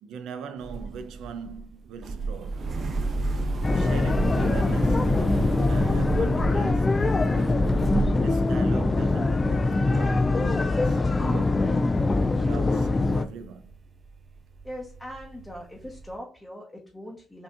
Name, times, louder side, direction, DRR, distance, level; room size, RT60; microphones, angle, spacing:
voice 1, 0.0-2.7 3.7-7.6 8.2-11.7 12.2-13.7, right 6 dB, 85° right, 0.4 m, -41 dB
sound 1, 0.6-12.2 12.4-16.1, right 3 dB, 50° right, 0.7 m, -32 dB
sound 2, 3.6-13.3, left 3 dB, 25° left, 0.3 m, -23 dB
voice 2, 14.6-17.4, equal, 5° left, 0.9 m, -41 dB
5.2 x 2.8 x 2.4 m
cardioid pair, 90°, 0 cm